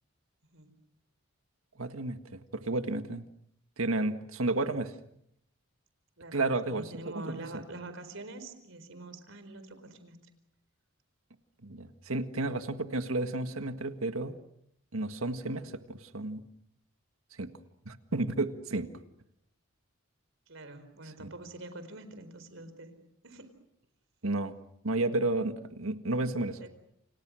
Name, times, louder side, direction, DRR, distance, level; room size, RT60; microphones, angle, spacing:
voice 1, 1.8-3.3 3.8-4.9 6.3-6.9 7.3-7.6 11.6-14.4 14.9-16.4 17.4-17.5 17.9-18.9 24.2-24.5 24.8-26.6, right 2 dB, 80° right, 8 dB, 1.8 m, -32 dB
voice 2, 6.2-10.3 20.5-22.9 23.2-23.5 26.6-26.7, right 2 dB, 65° right, 11 dB, 4.4 m, -45 dB
29.5 x 28.5 x 6.4 m, 0.74 s
head